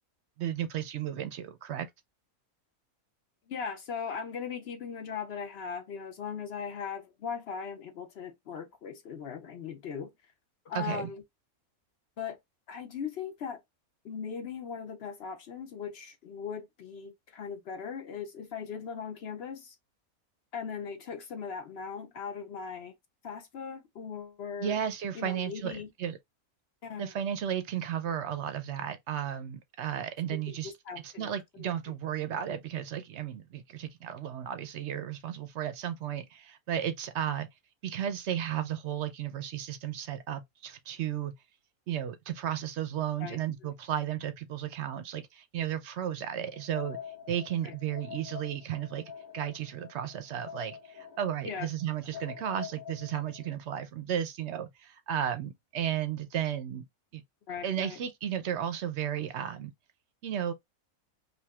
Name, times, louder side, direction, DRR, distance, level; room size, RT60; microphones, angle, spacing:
voice 1, 0.4-1.9 10.7-11.1 24.6-26.2 27.0-30.7 31.0-37.5 37.8-41.3 41.9-47.0 47.3-49.0 49.3-56.8 57.1-57.2 57.6-59.7 60.2-60.5, right 10 dB, 65° right, 0.7 m, -34 dB
voice 2, 3.5-10.1 10.7-11.2 12.2-12.4 12.7-13.6 14.0-19.8 20.5-22.9 23.2-24.8 25.1-25.9 26.8-27.1 30.3-31.7 43.2-43.7 47.6-47.7 51.4-51.7 57.5-58.0, left 6 dB, 60° left, 0.6 m, -39 dB
sound 1, 46.5-53.5, left 8 dB, 80° left, 1.5 m, -46 dB
5.1 x 2.6 x 2.2 m
omnidirectional pair, 1.6 m